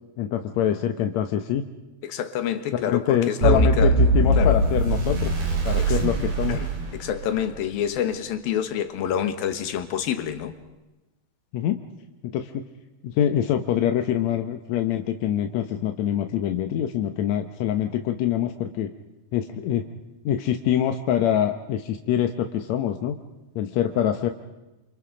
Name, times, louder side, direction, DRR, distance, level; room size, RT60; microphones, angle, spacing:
voice 1, 0.2-1.6 2.7-5.3 5.7-6.6 11.5-11.8 12.2-12.6 13.0-18.9 19.3-19.9 20.2-23.2 23.6-24.3, left 10 dB, 70° left, 7 dB, 1.8 m, -25 dB
voice 2, 2.0-3.9 4.4-4.6 5.8-6.0 6.5-10.5, left 9 dB, 90° left, 9 dB, 3.2 m, -27 dB
sound 1, 3.4-7.5, right 2 dB, 80° right, 5.8 m, -21 dB
28.5 x 27.0 x 5.1 m, 1.0 s
omnidirectional pair, 4.1 m